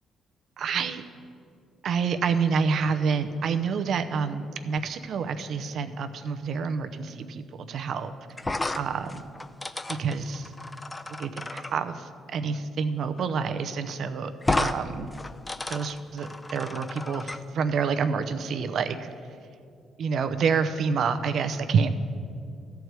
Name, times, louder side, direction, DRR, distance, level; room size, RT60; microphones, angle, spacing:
voice 1, 0.6-1.0 1.8-8.1 8.8-9.2 9.9-10.5 11.2-15.1 15.7-19.1 20.0-21.9, right 5 dB, 65° right, 9 dB, 0.7 m, -28 dB
sound 1, 8.4-11.7 13.2-13.3 13.6-13.7 14.4-14.8 15.1-17.4, left 2 dB, 20° left, 0.5 m, -32 dB
14.0 x 4.7 x 8.1 m, 2.4 s
cardioid pair, 90°, 0 cm